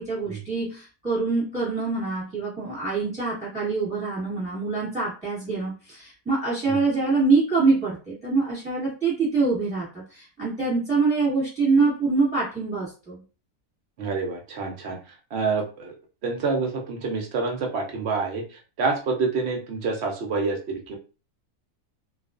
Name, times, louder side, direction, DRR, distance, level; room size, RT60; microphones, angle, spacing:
voice 1, 0.0-13.2, right 4 dB, 5° right, -8 dB, 1.0 m, -25 dB
voice 2, 14.0-15.0 15.3-15.9 16.2-18.4 18.8-21.0, right 4 dB, 65° right, 2 dB, 0.6 m, -27 dB
2.4 x 2.3 x 2.4 m, 0.34 s
omnidirectional pair, 1.7 m